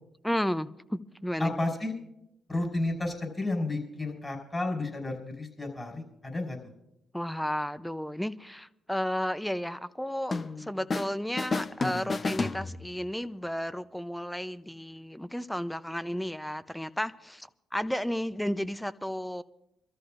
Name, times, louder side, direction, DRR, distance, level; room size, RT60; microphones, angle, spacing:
voice 1, 0.2-1.6 7.1-19.4, equal, 5° left, 15 dB, 0.6 m, -33 dB
voice 2, 1.4-1.9 2.5-6.6, left 2 dB, 20° left, 1 dB, 5.4 m, -32 dB
sound 1, 10.3-11.1 11.4-13.1, left 3 dB, 40° left, 0.8 m, -32 dB
26.0 x 13.5 x 2.6 m, 0.84 s
supercardioid pair, 60°, 0 cm